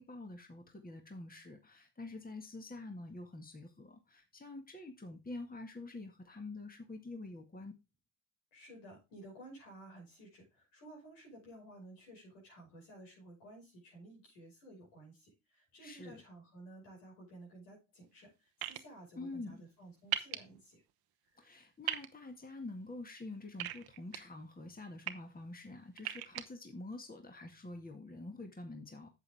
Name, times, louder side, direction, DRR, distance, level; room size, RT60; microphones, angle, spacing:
voice 1, 0.0-7.7 15.8-16.2 19.2-19.6 21.4-29.1, left 2 dB, 20° left, 4 dB, 2.0 m, -47 dB
voice 2, 8.5-18.3 18.6-20.8, right 1 dB, 85° left, -2 dB, 5.6 m, -54 dB
sound 1, 18.6-18.8 20.1-20.4 21.9-22.1 23.6-24.2 24.8-25.1 26.0-26.4, right 13 dB, 65° right, 1.0 m, -36 dB
8.1 x 7.7 x 3.5 m, 0.26 s
hypercardioid pair, 50°, 40 cm